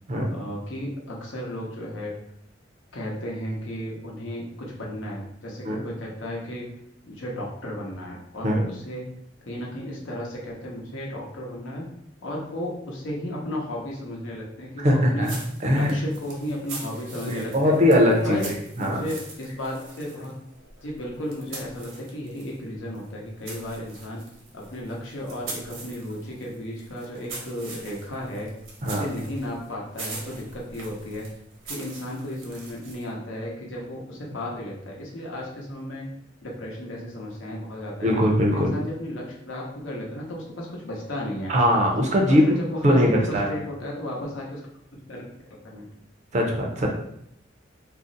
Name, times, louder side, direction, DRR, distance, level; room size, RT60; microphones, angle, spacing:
voice 1, 0.3-2.2 2.9-6.7 7.0-9.1 9.4-11.9 12.2-15.3 15.7-17.8 18.2-18.5 18.8-20.3 20.8-24.2 24.5-28.5 28.8-31.2 31.6-36.1 36.4-38.1 38.5-41.5 42.3-44.6 44.9-45.3 45.6-45.9, left 1 dB, 75° left, -2 dB, 0.8 m, -34 dB
voice 2, 14.8-15.9 17.3-19.0 28.8-29.0 38.0-38.7 41.5-42.4 42.8-43.5 46.3-46.9, equal, 35° right, 0 dB, 0.5 m, -21 dB
sound 1, 15.2-22.6 22.9-33.2, right 3 dB, 75° right, 0.8 m, -42 dB
2.5 x 2.0 x 3.8 m, 0.72 s
head